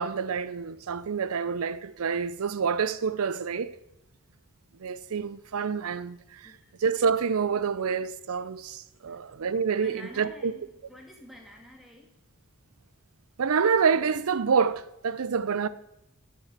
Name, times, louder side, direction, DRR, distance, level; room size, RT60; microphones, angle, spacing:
voice 1, 0.0-3.8 4.8-6.5 6.8-10.5 13.4-15.7, right 6 dB, 80° right, 0.5 m, -27 dB
voice 2, 9.8-12.1, left 1 dB, ahead, 1.8 m, -49 dB
9.8 x 7.0 x 7.4 m
head